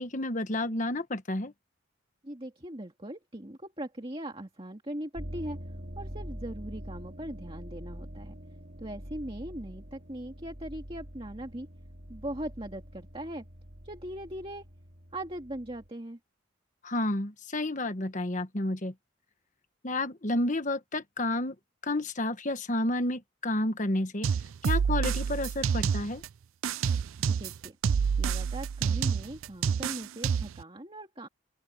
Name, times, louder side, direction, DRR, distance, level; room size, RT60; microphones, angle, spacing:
voice 1, 0.0-1.5 16.8-18.9 19.8-21.5 21.8-24.3 24.6-26.2, left 1 dB, 35° left, 1.3 m, -30 dB
voice 2, 2.2-5.6 6.0-8.3 8.8-11.7 12.1-13.4 13.8-14.7 15.1-16.2 27.2-27.8 28.2-31.3, right 1 dB, 25° right, 2.2 m, -40 dB
sound 1, 5.1-15.9, equal, 45° right, 3.7 m, -44 dB
sound 2, 24.2-26.3 26.6-30.6, right 6 dB, 80° right, 0.4 m, -28 dB
open air
head